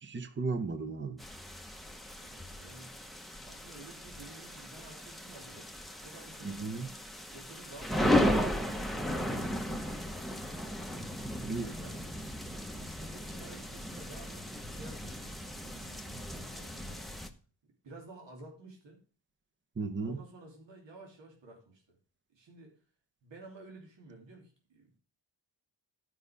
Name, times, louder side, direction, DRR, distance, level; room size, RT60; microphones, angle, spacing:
voice 1, 0.0-1.2 6.4-6.9 11.4-11.8 19.8-20.2, right 4 dB, 25° right, 0.8 m, -35 dB
sound 1, 1.2-17.3, left 1 dB, ahead, 0.9 m, -35 dB
voice 2, 2.2-3.0 3.4-5.7 6.0-6.8 7.3-10.3 11.8-12.1 12.7-17.0 17.6-19.0 20.0-22.0 22.3-22.8 23.2-25.0, right 2 dB, 70° right, 3.2 m, -52 dB
12.0 x 5.5 x 5.1 m
wide cardioid pair, 140°, 45 cm